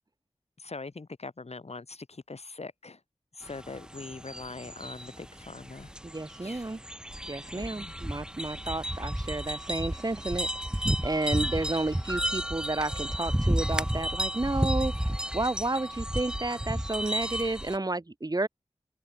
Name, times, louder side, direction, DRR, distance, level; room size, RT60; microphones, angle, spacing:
voice 1, 0.6-3.0 3.3-5.9 6.4-6.6 7.5-7.9, left 3 dB, 70° left, 5.2 m, -42 dB
sound 1, 3.4-17.8, equal, 5° right, 1.8 m, -32 dB
voice 2, 6.0-6.8 7.3-10.5 11.0-14.9 15.3-18.5, right 2 dB, 35° right, 1.5 m, -31 dB
open air
wide cardioid pair, 55°, 11 cm